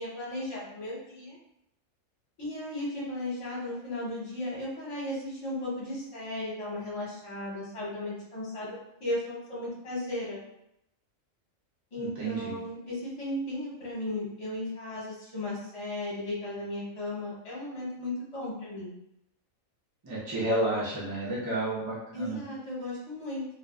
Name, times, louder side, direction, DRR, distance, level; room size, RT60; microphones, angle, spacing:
voice 1, 0.0-1.4 2.4-10.4 11.9-18.9 22.1-23.4, left 1 dB, 25° left, -6 dB, 0.8 m, -35 dB
voice 2, 12.0-12.5 20.0-22.4, right 1 dB, 35° right, -7 dB, 0.3 m, -31 dB
2.3 x 2.3 x 2.3 m, 0.79 s
omnidirectional pair, 1.5 m